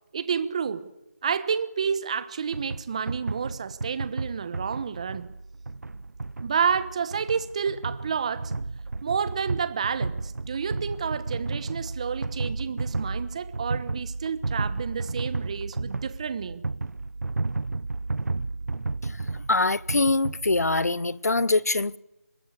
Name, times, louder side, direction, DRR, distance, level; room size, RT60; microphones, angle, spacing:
voice 1, 0.1-0.9 1.2-5.3 6.4-8.5 9.0-16.6, right 6 dB, 25° right, 1.1 m, -30 dB
sound 1, 2.5-20.9, right 3 dB, 75° right, 0.8 m, -33 dB
voice 2, 19.0-22.0, left 3 dB, 75° left, 1.1 m, -24 dB
25.5 x 20.0 x 8.3 m
figure-of-eight pair, 170°, 9 cm